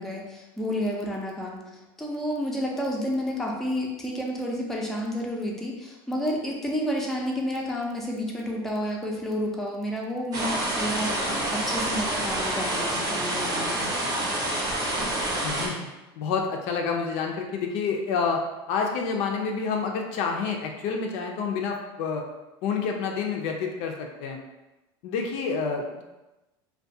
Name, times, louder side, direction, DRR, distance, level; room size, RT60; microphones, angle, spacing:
voice 1, 0.0-13.9, equal, 5° left, -2 dB, 0.5 m, -30 dB
sound 1, 10.3-15.7, right 1 dB, 30° right, 0.7 m, -27 dB
voice 2, 15.4-15.9 16.2-18.4 18.7-22.2 22.6-24.4 25.0-26.0, left 5 dB, 60° left, 2 dB, 0.4 m, -28 dB
2.3 x 2.2 x 2.6 m, 1.0 s
supercardioid pair, 100°, 13 cm